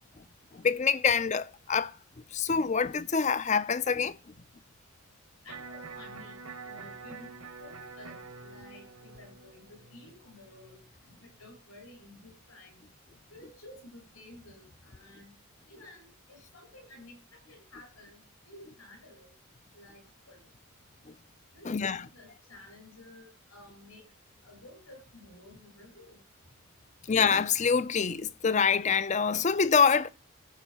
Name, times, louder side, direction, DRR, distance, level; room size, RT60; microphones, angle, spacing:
voice 1, 0.5-1.9 2.3-4.2 21.7-22.0 27.1-30.1, left 6 dB, 30° left, 0.4 m, -25 dB
voice 2, 5.4-7.3 7.6-10.8 11.1-12.8 13.3-15.3 15.6-18.2 18.4-19.3 19.7-20.4 21.5-24.1 24.4-26.2, left 1 dB, 75° left, 7.8 m, -52 dB
Electric guitar, 5.5-11.5, right 4 dB, 80° right, 1.4 m, -47 dB
14.5 x 5.6 x 5.4 m
head